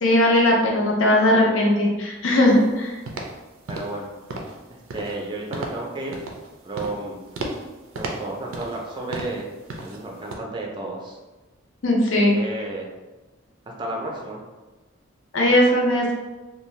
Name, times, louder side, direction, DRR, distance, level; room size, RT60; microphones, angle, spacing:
voice 1, 0.0-3.0 11.8-12.4 15.3-16.1, left 1 dB, 75° left, -1 dB, 0.6 m, -18 dB
sound 1, 2.5-2.7 3.1-3.4 3.7-4.0 4.3-4.6 4.9-5.2 5.5-5.8 6.1-6.5 6.7-7.0 7.3-7.7 7.9-8.9 9.1-9.4 9.7-10.0 10.3-10.4, right 2 dB, 85° right, 0.4 m, -33 dB
voice 2, 3.7-4.1 4.7-6.2 6.6-7.2 7.9-9.5 9.8-11.2 12.3-12.9 13.7-14.4, right 2 dB, 25° right, -1 dB, 0.4 m, -32 dB
2.6 x 2.2 x 3.1 m, 1.2 s
head